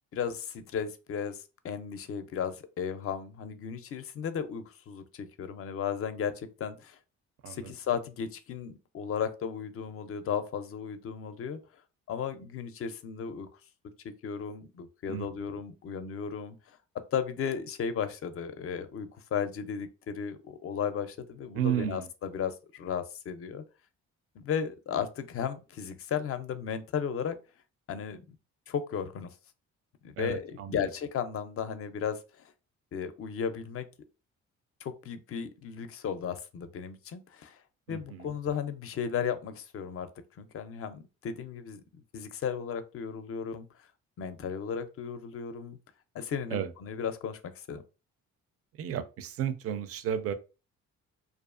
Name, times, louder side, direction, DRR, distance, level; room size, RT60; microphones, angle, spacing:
voice 1, 0.1-1.4 1.6-7.0 7.5-11.6 12.1-13.5 14.0-16.6 17.1-23.6 24.4-27.4 27.9-28.2 28.7-29.3 30.0-32.2 32.9-33.9 34.8-37.6 37.9-40.1 40.4-43.7 44.2-45.8 46.1-47.8, left 7 dB, 50° left, 0.4 m, -35 dB
voice 2, 21.5-22.1 30.2-30.9 37.9-38.3 46.5-46.7 48.8-50.3, right 9 dB, 50° right, 0.4 m, -33 dB
2.5 x 2.3 x 2.4 m
cardioid pair, 90°, 30 cm